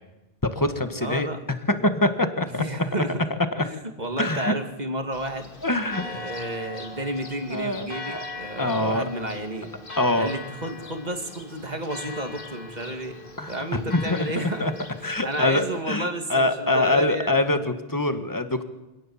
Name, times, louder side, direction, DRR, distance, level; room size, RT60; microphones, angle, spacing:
voice 1, 0.4-1.3 1.7-2.6 3.5-3.6 4.2-4.5 5.6-6.0 7.5-8.2 8.6-9.0 10.0-10.3 13.4-14.3 14.6-14.7 15.0-18.6, left 2 dB, 20° left, 9 dB, 1.6 m, -24 dB
voice 2, 1.0-1.4 2.4-3.3 3.6-5.5 6.0-9.7 10.2-13.2 13.5-14.7 15.0-17.3, right 1 dB, 40° right, 5 dB, 2.5 m, -32 dB
Church bell, 5.1-15.8, left 2 dB, 55° left, 2.3 m, -40 dB
25.5 x 17.5 x 7.4 m, 1.0 s
omnidirectional pair, 1.1 m